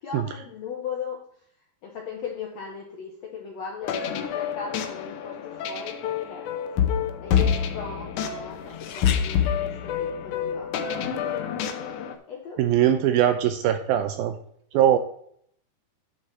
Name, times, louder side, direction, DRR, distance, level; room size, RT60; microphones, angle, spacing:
voice 1, 0.0-1.2 1.8-6.9 7.2-10.9 12.3-12.6, left 6 dB, 65° left, 0 dB, 1.7 m, -38 dB
sound 1, 3.8-12.1, left 8 dB, 85° left, 1.7 m, -27 dB
voice 2, 12.6-14.3 14.7-15.0, right 11 dB, 80° right, 8 dB, 2.2 m, -21 dB
9.1 x 6.4 x 4.3 m, 0.64 s
omnidirectional pair, 4.7 m